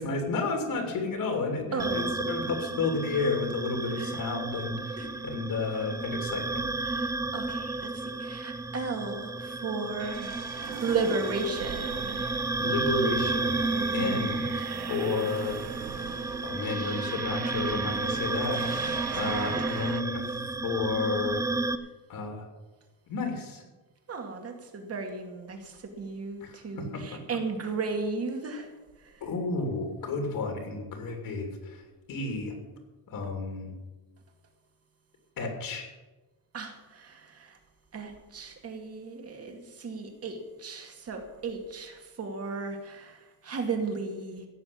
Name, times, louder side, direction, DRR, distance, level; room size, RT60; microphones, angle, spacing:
voice 1, 0.0-6.6 12.6-14.5 14.9-15.6 16.4-21.4 22.1-22.5 23.1-23.6 26.4-27.2 29.2-31.8 32.1-32.6 33.1-33.7 35.4-35.9, left 3 dB, 60° left, 3 dB, 3.0 m, -32 dB
sound 1, 1.8-21.8, right 2 dB, 10° right, 0.4 m, -32 dB
voice 2, 6.8-12.4 13.7-14.7 18.5-19.2 19.6-19.7 24.1-28.7 29.0-29.2 36.5-37.6 37.9-44.5, right 4 dB, 40° right, 4 dB, 2.3 m, -35 dB
sound 2, 10.0-20.0, right 11 dB, 90° right, 1.0 m, -40 dB
16.0 x 7.0 x 8.7 m, 1.2 s
cardioid pair, 160°, 38 cm